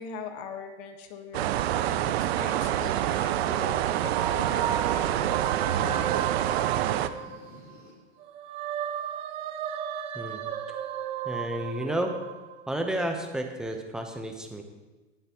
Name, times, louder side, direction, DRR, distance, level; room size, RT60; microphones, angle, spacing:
voice 1, 0.0-5.6, left 6 dB, 40° left, 6 dB, 1.5 m, -42 dB
sound 1, 1.3-7.1, right 12 dB, 65° right, 0.6 m, -27 dB
sound 2, 1.6-8.2, left 1 dB, 25° left, 3.3 m, -51 dB
sound 3, 3.3-7.8 8.2-13.0, right 9 dB, 20° right, 0.3 m, -34 dB
voice 2, 11.2-12.1 12.7-14.6, right 1 dB, ahead, 4 dB, 0.9 m, -31 dB
18.0 x 6.8 x 3.0 m, 1.2 s
hypercardioid pair, 130°, 34 cm